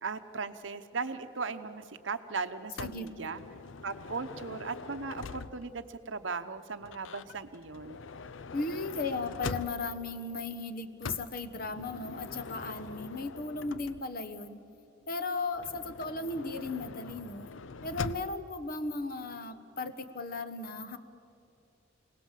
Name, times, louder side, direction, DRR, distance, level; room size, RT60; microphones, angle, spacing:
voice 1, 0.0-3.4 3.8-8.0, right 4 dB, 70° right, 9 dB, 0.9 m, -37 dB
Motor vehicle (road) / Sliding door, 2.8-5.9 6.8-10.1 11.0-14.3 15.5-18.5, left 4 dB, 80° left, 0.6 m, -43 dB
voice 2, 8.5-14.6 15.1-17.5 17.8-21.0, left 3 dB, 45° left, 10 dB, 1.2 m, -36 dB
28.5 x 18.5 x 7.5 m, 2.6 s
head